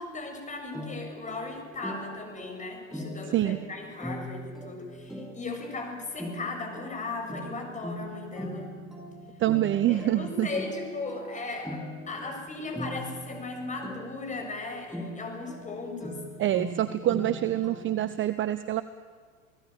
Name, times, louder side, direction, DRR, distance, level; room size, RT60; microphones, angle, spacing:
voice 1, 0.0-8.7 9.9-16.3, left 3 dB, 20° left, 4 dB, 6.9 m, -37 dB
sound 1, 0.7-18.2, equal, ahead, 7.3 m, -41 dB
voice 2, 9.4-10.5 16.4-18.8, right 13 dB, 30° right, 13 dB, 1.0 m, -26 dB
28.5 x 19.0 x 9.1 m, 1.5 s
hypercardioid pair, 95°, 41 cm